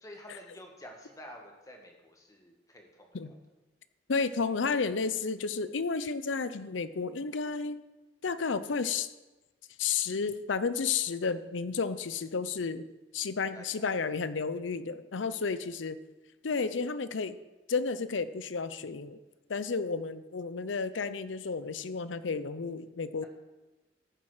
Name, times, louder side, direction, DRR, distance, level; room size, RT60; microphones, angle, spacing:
voice 1, 0.0-3.4 13.5-13.9 15.2-15.7, equal, 20° left, 2 dB, 1.6 m, -50 dB
voice 2, 4.1-7.8 8.2-9.1 9.8-12.8 13.1-16.0 16.4-17.4 17.7-19.2 19.5-23.3, left 5 dB, 85° left, 14 dB, 0.6 m, -32 dB
14.0 x 7.1 x 5.0 m, 1.1 s
head